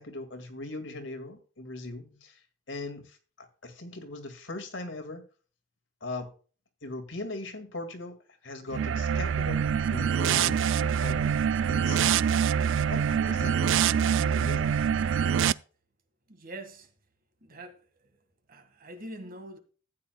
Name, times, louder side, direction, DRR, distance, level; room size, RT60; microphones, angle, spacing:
voice 1, 0.0-5.2 6.0-6.3 6.8-8.2 8.4-14.7, left 2 dB, 75° left, 1.9 m, -40 dB
sound 1, 8.7-15.5, right 8 dB, 75° right, 0.3 m, -25 dB
voice 2, 16.3-16.9 17.4-17.9 18.5-19.6, right 1 dB, 50° right, 1.8 m, -44 dB
14.0 x 9.1 x 2.2 m
head